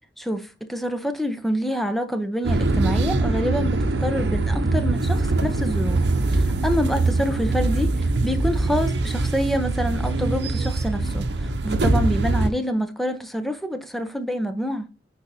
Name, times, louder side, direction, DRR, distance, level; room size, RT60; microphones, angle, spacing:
voice 1, 0.2-14.9, equal, ahead, 0.7 m, -27 dB
sound 1, 2.4-12.5, right 2 dB, 70° right, 0.7 m, -23 dB
8.8 x 4.7 x 2.8 m
head